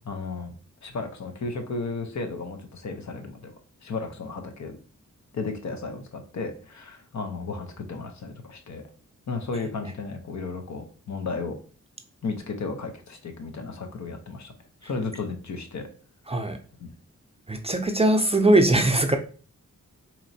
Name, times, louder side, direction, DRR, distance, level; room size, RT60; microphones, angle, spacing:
voice 1, 0.0-0.5 0.8-3.5 3.8-4.8 5.3-8.8 9.3-11.6 12.2-14.5 14.8-15.9 16.8-16.9, left 4 dB, 65° left, 0.8 m, -34 dB
voice 2, 16.3-16.6 17.5-19.2, right 1 dB, 20° right, 0.4 m, -20 dB
4.2 x 3.0 x 2.7 m
wide cardioid pair, 80°, 30 cm